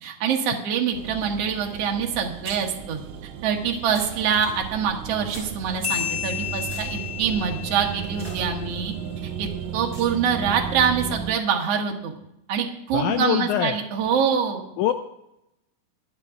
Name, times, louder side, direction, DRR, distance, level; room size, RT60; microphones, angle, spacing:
voice 1, 0.0-3.0 3.4-8.9 9.4-12.1 12.5-14.6, right 7 dB, 55° right, 2 dB, 2.2 m, -25 dB
sound 1, 0.9-11.4, right 8 dB, 80° right, 1.5 m, -35 dB
sound 2, 2.4-5.9 6.6-10.6, right 2 dB, 20° right, 5.8 m, -44 dB
sound 3, 5.8-8.9, left 11 dB, 40° left, 0.9 m, -32 dB
voice 2, 12.9-13.8 14.8-14.9, left 11 dB, 80° left, 8 dB, 1.9 m, -23 dB
23.5 x 8.0 x 3.6 m, 0.85 s
omnidirectional pair, 3.7 m